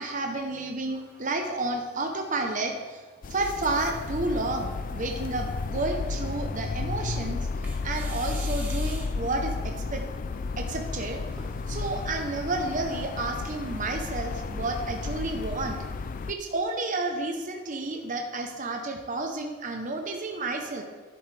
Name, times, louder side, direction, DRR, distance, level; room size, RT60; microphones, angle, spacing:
voice 1, 0.0-3.0 3.3-7.5 7.8-10.0 10.6-11.2 11.7-15.9 16.3-20.8, right 2 dB, 35° right, 3 dB, 0.8 m, -31 dB
sound 1, 0.9-3.5 4.1-4.2 4.9-5.5 7.6-9.4 11.3-14.2, right 2 dB, 10° right, 1.4 m, -49 dB
sound 2, 3.2-16.3, left 4 dB, 40° left, 0.3 m, -33 dB
11.0 x 8.5 x 3.4 m, 1.3 s
head